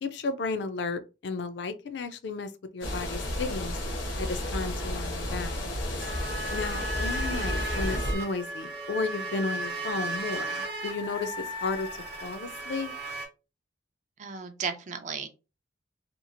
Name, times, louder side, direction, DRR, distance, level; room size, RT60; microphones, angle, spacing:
voice 1, 0.0-3.8 4.2-5.7 6.5-11.9 12.2-12.9, left 4 dB, 65° left, 0.4 m, -33 dB
sound 1, 2.8-8.1, left 1 dB, 85° left, 0.9 m, -32 dB
sound 2, 6.0-13.3, right 1 dB, 60° right, 0.8 m, -35 dB
voice 2, 14.2-15.3, right 6 dB, 40° right, 0.4 m, -34 dB
2.9 x 2.3 x 2.5 m
head